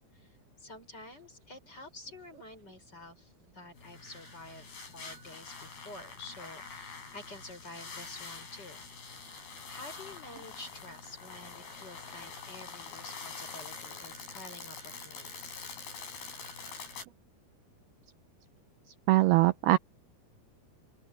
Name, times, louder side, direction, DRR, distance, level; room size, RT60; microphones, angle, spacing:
voice 1, 0.0-8.8 9.7-15.5, left 2 dB, 25° left, 6.4 m, -49 dB
sound 1, 3.8-17.0, left 5 dB, 55° left, 8.3 m, -45 dB
voice 2, 19.1-19.8, right 17 dB, 75° right, 2.4 m, -22 dB
open air
omnidirectional pair, 5.0 m